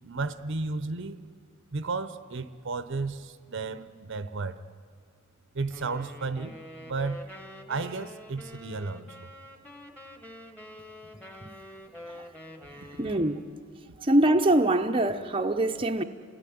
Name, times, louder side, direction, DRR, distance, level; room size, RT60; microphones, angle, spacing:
voice 1, 0.0-1.2 1.7-4.6 5.5-7.3 7.7-9.3, right 3 dB, 60° right, 0.8 m, -33 dB
sound 1, 5.7-13.6, left 1 dB, 5° left, 1.6 m, -46 dB
voice 2, 12.7-13.4 14.0-16.0, right 1 dB, 25° right, 0.8 m, -24 dB
29.0 x 18.5 x 9.4 m
head